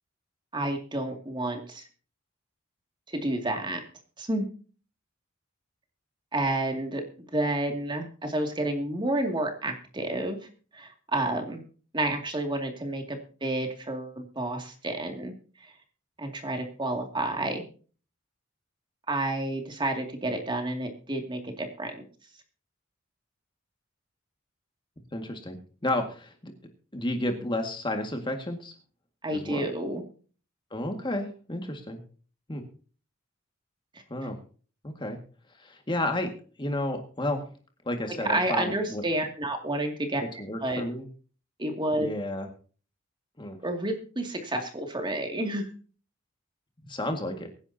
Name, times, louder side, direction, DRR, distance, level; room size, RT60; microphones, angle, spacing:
voice 1, 0.5-1.8 3.1-3.8 4.2-4.5 6.3-10.4 10.7-11.6 11.9-15.3 15.6-15.7 16.2-17.6 19.1-22.0 29.2-30.0 34.2-34.3 38.3-40.2 40.6-40.8 41.6-42.1 43.6-45.7, right 1 dB, 25° right, 4 dB, 2.4 m, -30 dB
voice 2, 25.1-26.5 26.9-28.7 29.3-29.7 30.7-32.0 32.5-32.6 34.1-34.4 34.8-35.2 35.6-37.4 37.9-39.0 40.2-41.0 42.0-42.5 43.4-43.6 46.8-47.5, left 1 dB, 25° left, 4 dB, 1.9 m, -32 dB
23.5 x 10.5 x 2.8 m, 0.40 s
head